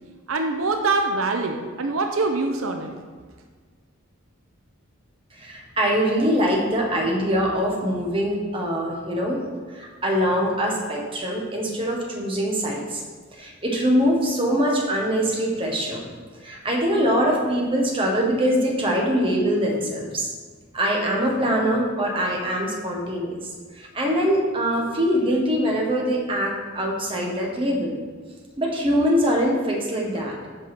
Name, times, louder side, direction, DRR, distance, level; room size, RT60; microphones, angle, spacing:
voice 1, 0.3-2.9, right 3 dB, 75° right, 4 dB, 0.7 m, -24 dB
voice 2, 5.4-9.4 9.7-13.0 13.4-16.0 16.4-20.3 20.7-23.4 23.7-28.0 28.6-30.3, equal, 25° right, -2 dB, 1.4 m, -23 dB
7.9 x 5.3 x 6.0 m, 1.5 s
head